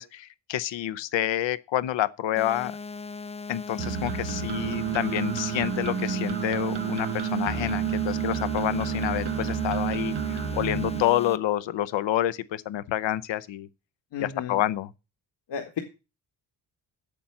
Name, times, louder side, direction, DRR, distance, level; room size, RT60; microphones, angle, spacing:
voice 1, 0.0-2.8 3.5-13.7 14.2-14.9, left 12 dB, 90° left, 0.8 m, -28 dB
sound 1, 2.4-11.4, left 4 dB, 15° left, 0.6 m, -38 dB
sound 2, 3.8-11.0, right 10 dB, 65° right, 1.2 m, -30 dB
voice 2, 14.1-14.6 15.5-15.8, left 7 dB, 75° left, 1.7 m, -33 dB
8.6 x 7.6 x 7.1 m
cardioid pair, 90°, 43 cm